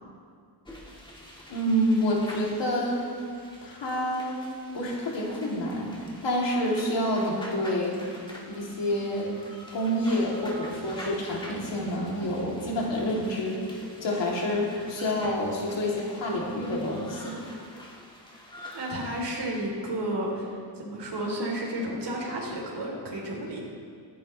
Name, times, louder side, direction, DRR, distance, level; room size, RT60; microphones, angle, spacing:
sound 1, 0.6-19.3, equal, 10° left, 2.0 m, -46 dB
voice 1, 1.5-3.0 3.6-4.4 4.7-8.0 8.4-9.3 9.7-13.7 14.0-17.3, equal, 85° left, -4 dB, 3.1 m, -28 dB
voice 2, 18.7-23.6, right 1 dB, 70° right, -3 dB, 3.6 m, -32 dB
22.0 x 10.0 x 3.3 m, 2.2 s
wide cardioid pair, 125°, 43 cm